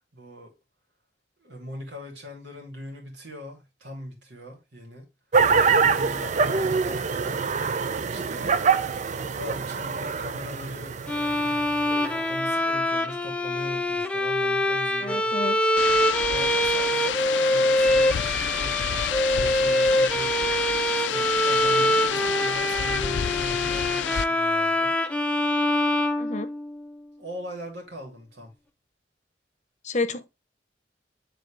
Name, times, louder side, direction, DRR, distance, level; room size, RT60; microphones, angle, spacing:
voice 1, 0.1-0.5 1.4-5.1 5.6-7.5 8.1-8.6 9.2-11.0 12.1-15.3 16.3-20.3 20.9-24.9 27.2-28.5, left 1 dB, 75° right, 3.0 m, -40 dB
sound 1, 5.3-12.3, right 5 dB, 40° right, 0.5 m, -25 dB
Bowed string instrument, 11.1-26.9, left 1 dB, 5° left, 0.6 m, -24 dB
voice 2, 15.0-15.6 26.2-26.5 29.8-30.3, left 3 dB, 40° left, 0.8 m, -29 dB
sound 2, 15.8-24.3, left 9 dB, 90° left, 0.4 m, -29 dB
9.6 x 3.9 x 3.4 m
head